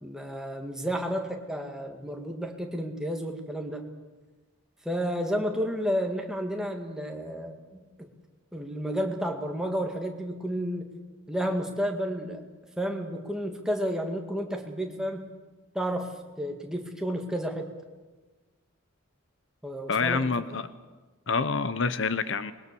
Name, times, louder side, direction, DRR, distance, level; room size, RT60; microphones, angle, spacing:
voice 1, 0.0-3.8 4.8-8.1 8.5-10.9 11.3-12.5 12.8-15.3 15.7-17.7 19.6-20.3, equal, 5° right, 2 dB, 2.1 m, -31 dB
voice 2, 19.9-20.7 21.3-22.5, left 4 dB, 60° left, 13 dB, 0.7 m, -27 dB
26.0 x 21.0 x 6.9 m, 1.3 s
head